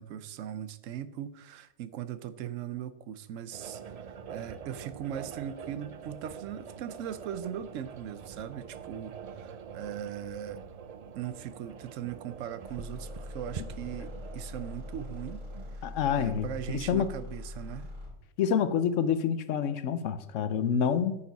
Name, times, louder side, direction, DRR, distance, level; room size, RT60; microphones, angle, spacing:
voice 1, 0.0-10.6 11.1-15.5 15.7-18.0, right 10 dB, 85° right, 14 dB, 1.0 m, -39 dB
sound 1, 3.5-15.8, right 6 dB, 60° right, 0.4 m, -45 dB
sound 2, 12.7-18.2, left 2 dB, 40° right, 3.6 m, -42 dB
voice 2, 15.8-16.5 16.7-17.1 18.4-21.2, left 7 dB, 75° left, 13 dB, 1.0 m, -27 dB
8.5 x 6.8 x 4.0 m, 0.87 s
omnidirectional pair, 1.3 m